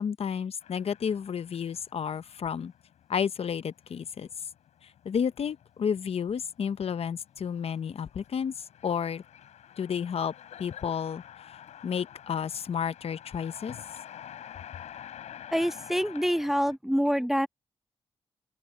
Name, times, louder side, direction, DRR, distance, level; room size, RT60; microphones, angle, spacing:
voice 1, 0.0-2.7 3.1-4.3 5.0-9.2 9.8-10.3 10.6-11.2 11.8-13.8, left 7 dB, 60° left, 0.8 m, -31 dB
sound 1, 0.6-16.8, left 10 dB, 90° left, 7.9 m, -49 dB
voice 2, 15.5-17.5, equal, 5° right, 0.8 m, -26 dB
open air
cardioid pair, 65°, 11 cm